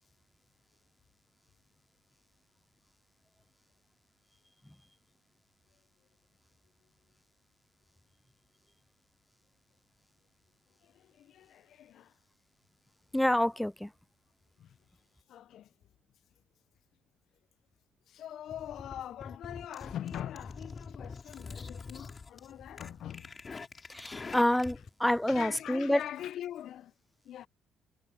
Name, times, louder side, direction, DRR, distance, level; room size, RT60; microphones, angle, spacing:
voice 1, 10.8-12.1 14.6-14.8 15.3-15.7 18.1-23.3 25.3-26.9 27.2-27.5, left 11 dB, 65° left, 0.9 m, -42 dB
voice 2, 13.1-13.9 23.9-26.0, left 1 dB, 5° left, 0.5 m, -28 dB
sound 1, 18.5-24.9, left 4 dB, 35° left, 4.2 m, -45 dB
hypercardioid pair, 45°, 0 cm